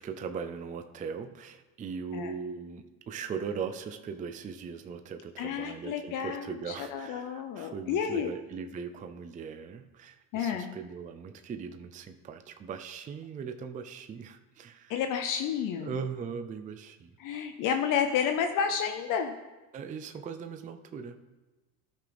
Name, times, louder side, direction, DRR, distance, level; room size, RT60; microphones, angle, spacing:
voice 1, 0.0-15.0 15.8-17.1 19.7-21.2, right 6 dB, 20° right, 8 dB, 0.5 m, -39 dB
voice 2, 5.4-8.3 10.3-10.7 14.9-15.9 17.2-19.3, left 7 dB, 45° left, 6 dB, 0.7 m, -30 dB
13.0 x 5.8 x 3.4 m, 1.1 s
supercardioid pair, 100°, 45 cm